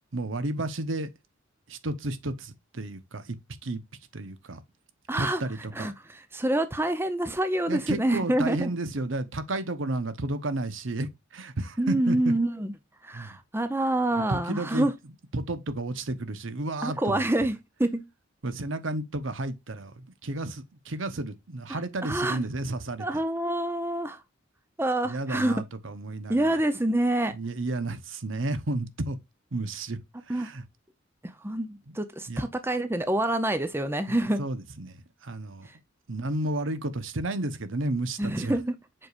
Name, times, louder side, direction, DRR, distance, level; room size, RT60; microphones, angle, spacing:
voice 1, 0.1-1.1 1.7-3.4 3.6-3.8 4.1-4.6 5.2-5.9 7.7-12.3 13.1-13.3 14.1-14.9 15.3-17.3 18.4-23.1 25.0-26.6 27.3-29.2 29.5-30.0 30.3-30.6 31.9-32.0 32.3-32.5 34.4-35.7 36.1-38.6, right 2 dB, 75° right, 1.0 m, -32 dB
voice 2, 5.1-5.4 5.8-8.7 11.8-12.7 13.0-14.9 16.8-18.1 21.7-22.4 23.0-24.2 24.8-25.5 26.3-27.3 30.3-30.5 31.2-34.4 38.2-38.8, right 1 dB, 10° right, 0.7 m, -27 dB
7.7 x 4.9 x 2.5 m
head